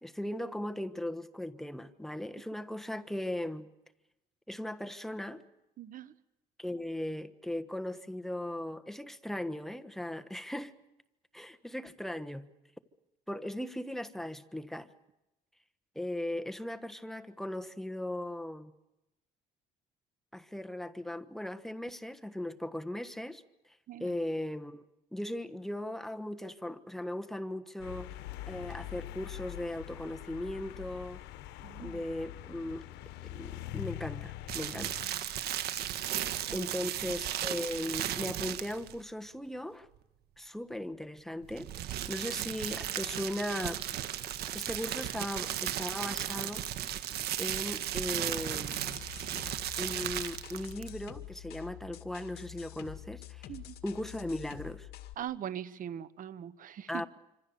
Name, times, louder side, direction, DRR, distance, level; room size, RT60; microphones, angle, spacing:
voice 1, 0.0-3.7 4.5-5.4 6.6-10.7 11.3-12.5 13.3-14.9 15.9-18.7 20.3-23.4 24.0-24.8 25.1-28.1 28.5-31.2 31.8-32.8 33.3-35.1 36.5-39.9 40.4-43.8 44.5-46.6 47.4-49.0 49.8-53.5 53.8-54.9 56.9-57.1, left 1 dB, ahead, 9 dB, 1.3 m, -38 dB
voice 2, 5.8-6.1 23.9-24.1 31.6-32.0 34.7-35.2 36.5-36.7 53.5-53.7 55.2-57.1, right 10 dB, 55° right, 15 dB, 1.2 m, -42 dB
sound 1, 27.8-35.1, left 14 dB, 90° left, 1.2 m, -43 dB
sound 2, 34.5-39.0 41.4-51.0, right 12 dB, 70° right, 1.5 m, -36 dB
sound 3, 48.3-55.1, left 13 dB, 70° left, 1.9 m, -47 dB
26.0 x 26.0 x 6.9 m, 0.96 s
cardioid pair, 110°, 17 cm